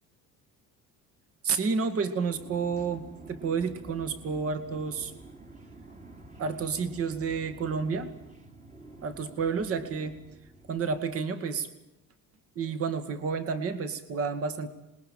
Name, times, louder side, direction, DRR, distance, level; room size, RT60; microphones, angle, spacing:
voice 1, 1.4-5.1 6.4-8.1 9.0-10.2 10.7-11.7 12.6-14.7, right 5 dB, 40° right, 10 dB, 2.3 m, -30 dB
sound 1, 2.2-11.2, right 2 dB, 20° right, 2.6 m, -49 dB
26.5 x 21.5 x 7.5 m, 0.90 s
cardioid pair, 165°, 34 cm